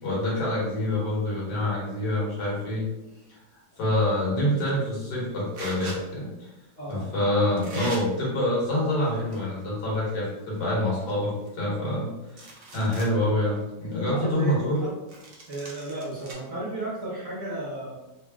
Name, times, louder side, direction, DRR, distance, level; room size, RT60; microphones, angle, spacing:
voice 1, 0.0-2.9 3.8-6.5 6.9-14.8, left 1 dB, 70° left, -5 dB, 1.8 m, -26 dB
sound 1, 4.5-4.8 5.5-6.0 6.9-7.0 7.6-8.0 8.9-9.6 9.9-10.0 10.5-10.6 10.9-11.9 12.3-13.1 13.6-13.7 15.1-16.3, right 2 dB, 65° right, 0.5 m, -41 dB
voice 2, 6.8-7.1 14.1-14.9 15.5-17.9, right 1 dB, 45° right, -9 dB, 1.0 m, -34 dB
4.0 x 2.1 x 3.4 m, 1.0 s
omnidirectional pair, 1.9 m